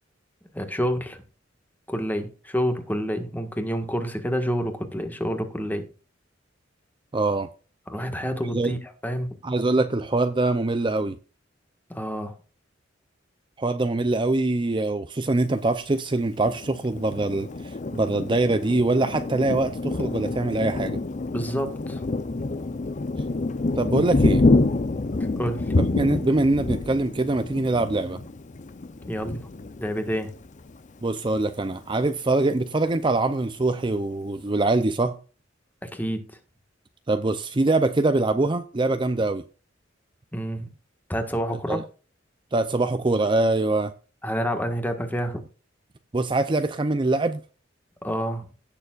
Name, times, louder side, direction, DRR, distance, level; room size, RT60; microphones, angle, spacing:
voice 1, 0.5-1.2 1.9-5.9 7.9-8.8 9.0-9.3 11.9-12.3 21.3-22.0 25.4-25.8 29.1-29.5 29.8-30.3 35.8-36.4 40.3-40.7 41.1-41.8 44.2-45.5 48.0-48.5, equal, 10° left, 1.6 m, -28 dB
voice 2, 7.1-7.5 8.4-8.7 9.4-11.2 13.6-21.0 23.7-24.4 25.8-28.2 31.0-35.1 37.1-39.4 41.7-41.8 42.5-43.9 46.1-47.4, right 2 dB, 25° right, 0.6 m, -23 dB
Thunder, 16.4-30.8 31.2-31.4 31.7-32.3, left 2 dB, 40° left, 0.6 m, -27 dB
17.0 x 6.9 x 2.5 m
head